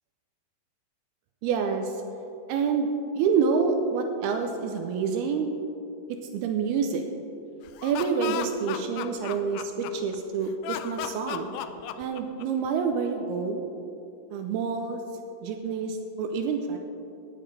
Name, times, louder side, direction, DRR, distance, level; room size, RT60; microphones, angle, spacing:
voice 1, 1.4-2.0 2.5-2.9 3.1-5.5 6.1-7.0 7.8-11.5 12.0-13.6 14.3-15.0 15.4-16.8, right 5 dB, 80° right, 5 dB, 2.4 m, -27 dB
Laughter, 7.7-10.2 10.6-12.7, left 11 dB, 90° left, 2.1 m, -35 dB
18.0 x 8.6 x 3.3 m, 2.8 s
omnidirectional pair, 4.7 m